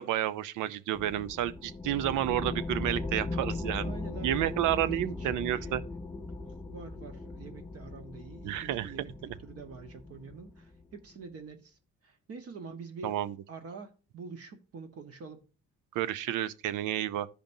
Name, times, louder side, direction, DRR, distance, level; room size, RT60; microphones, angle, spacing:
voice 1, 0.0-3.9 4.2-5.8 8.4-8.9 13.0-13.3 15.9-17.3, right 12 dB, 85° right, 0.5 m, -30 dB
sound 1, 0.9-11.0, left 3 dB, 10° left, 0.5 m, -39 dB
voice 2, 3.8-5.7 6.7-11.8 12.0-13.2 13.5-15.4, right 4 dB, 50° right, 1.1 m, -46 dB
13.5 x 5.1 x 2.6 m
cardioid pair, 90°, 30 cm